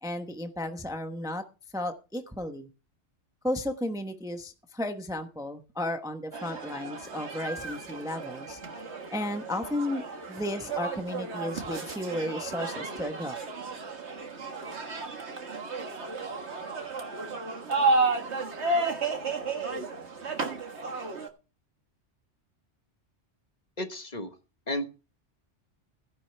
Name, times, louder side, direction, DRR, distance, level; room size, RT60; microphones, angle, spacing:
voice 1, 0.0-1.4 1.7-2.7 3.4-8.6 9.1-13.4, left 1 dB, 5° right, 6 dB, 0.9 m, -34 dB
sound 1, 6.3-21.3, right 3 dB, 70° right, 1.8 m, -32 dB
voice 2, 23.8-24.3 24.7-24.8, left 1 dB, 35° left, 7 dB, 1.4 m, -32 dB
16.0 x 10.5 x 3.3 m, 0.32 s
omnidirectional pair, 1.2 m